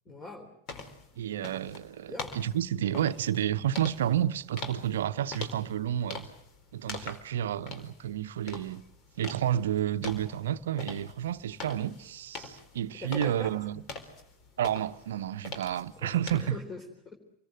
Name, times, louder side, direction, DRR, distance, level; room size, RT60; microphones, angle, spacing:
voice 1, 0.1-0.5 1.1-1.3 2.1-2.4 13.0-13.5 16.0-17.1, left 2 dB, 20° left, 3.8 m, -43 dB
sound 1, 0.7-16.5, left 4 dB, 40° left, 4.2 m, -44 dB
voice 2, 1.2-6.3 6.7-8.8 9.2-13.8 14.6-16.6, right 11 dB, 60° right, 1.0 m, -30 dB
27.5 x 21.5 x 7.7 m
figure-of-eight pair, 90°, 0 cm